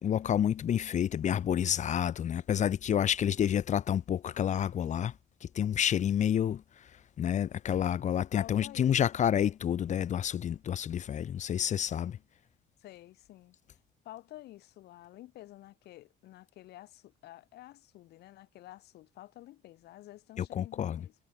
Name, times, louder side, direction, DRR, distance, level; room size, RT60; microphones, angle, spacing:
voice 1, 0.0-5.1 5.4-6.6 7.2-12.2 20.4-21.0, left 9 dB, 45° left, 0.9 m, -29 dB
voice 2, 8.3-9.3 11.9-12.1 12.8-13.6 14.0-21.1, left 15 dB, 75° left, 3.7 m, -51 dB
cardioid pair, 110°, 17 cm